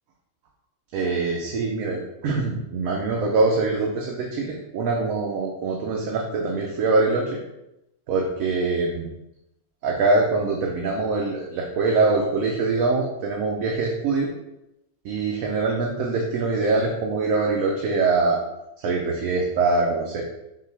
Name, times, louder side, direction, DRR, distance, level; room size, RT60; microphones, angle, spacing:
voice 1, 0.9-7.4 8.1-9.1 9.8-14.3 15.0-18.4 18.8-20.2, right 3 dB, 90° right, -1 dB, 1.1 m, -23 dB
5.5 x 2.4 x 3.3 m, 0.88 s
omnidirectional pair, 1.4 m